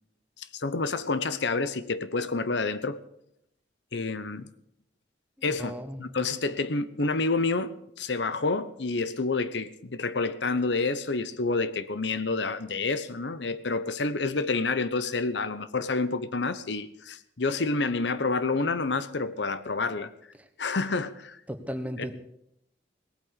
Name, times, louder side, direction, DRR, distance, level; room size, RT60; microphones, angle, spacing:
voice 1, 0.4-3.0 3.9-4.5 5.4-20.1 20.6-21.4, left 3 dB, 85° left, 0.9 m, -29 dB
voice 2, 5.5-6.0 20.4-20.5 21.5-22.1, equal, 10° right, 1.2 m, -36 dB
18.5 x 8.8 x 8.2 m
head